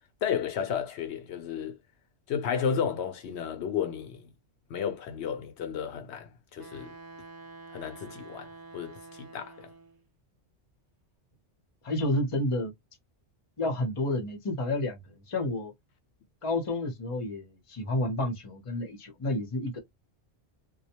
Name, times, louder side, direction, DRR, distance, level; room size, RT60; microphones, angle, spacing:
voice 1, 0.2-1.8 2.3-4.2 4.7-6.9 7.7-9.7, left 7 dB, 75° left, 0.8 m, -33 dB
Wind instrument woodwind instrument, 6.6-10.0, right 3 dB, 25° right, 0.5 m, -48 dB
voice 2, 11.8-12.7 13.6-15.7 16.4-19.8, left 1 dB, 35° left, 0.7 m, -30 dB
2.2 x 2.1 x 2.8 m
omnidirectional pair, 1.2 m